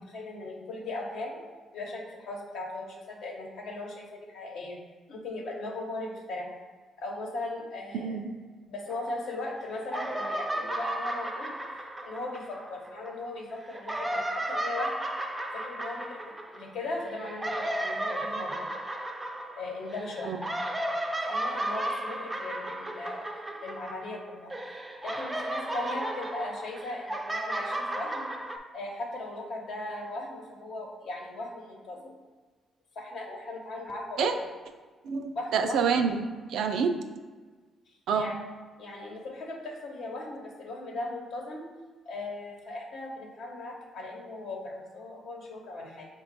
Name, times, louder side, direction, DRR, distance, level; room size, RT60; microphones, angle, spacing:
voice 1, 0.1-1.4 1.7-4.8 5.1-6.5 7.0-8.2 8.7-14.9 15.5-18.7 19.6-20.4 21.3-24.8 25.0-28.3 28.7-32.1 32.9-34.3 35.3-35.8 38.1-38.3 38.8-41.7 42.0-46.1, left 2 dB, 75° left, -1 dB, 0.9 m, -38 dB
voice 2, 7.9-8.3 20.3-20.4 34.2-34.3 35.0-36.9 38.1-38.3, right 6 dB, 80° right, 6 dB, 0.4 m, -27 dB
sound 1, 8.9-9.5 9.8-13.1 13.6-24.2 24.5-28.6, right 1 dB, 15° right, 0.4 m, -34 dB
5.2 x 2.2 x 4.0 m, 1.4 s
cardioid pair, 90°, 0 cm